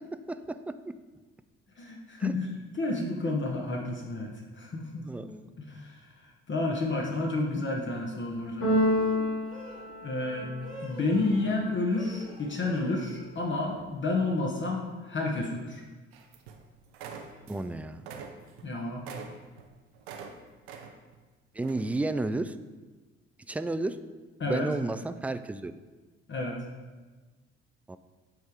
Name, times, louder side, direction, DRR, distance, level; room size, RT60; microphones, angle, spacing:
voice 1, 0.3-0.7 2.2-2.3 5.0-5.5 17.5-18.0 21.5-22.6 23.5-24.0 24.4-25.7 27.9-28.0, right 2 dB, 5° right, 11 dB, 0.3 m, -32 dB
voice 2, 1.8-2.5 2.8-5.1 5.6-6.0 6.5-8.7 10.0-10.5 10.8-15.8 18.6-19.0 24.4-24.7 26.3-26.6, left 2 dB, 40° left, -1 dB, 1.1 m, -30 dB
sound 1, 6.9-7.2 8.7-9.9 10.6-11.6 11.9-12.9, left 1 dB, 15° left, 1.9 m, -45 dB
Keyboard (musical), 8.6-10.7, left 1 dB, 60° left, 2.0 m, -28 dB
sound 2, 16.1-16.6 16.9-17.7 17.9-20.3 20.6-21.2 21.6-21.8, right 6 dB, 85° right, 0.6 m, -44 dB
8.1 x 3.4 x 4.7 m, 1.3 s
hypercardioid pair, 50°, 30 cm